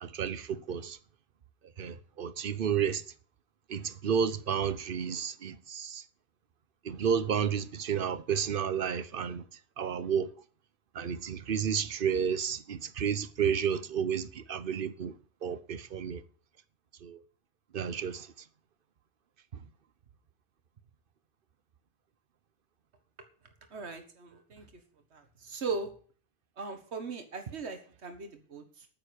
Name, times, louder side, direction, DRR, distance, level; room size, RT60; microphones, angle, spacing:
voice 1, 0.0-1.0 1.8-3.0 3.7-6.0 6.8-9.4 9.8-10.3 10.9-15.1 15.4-16.2 17.0-17.2 17.7-18.3, right 7 dB, 55° right, 1.0 m, -31 dB
voice 2, 23.7-24.7 25.1-25.9 26.6-28.9, right 4 dB, 70° right, 1.9 m, -39 dB
9.4 x 7.5 x 8.8 m
omnidirectional pair, 1.2 m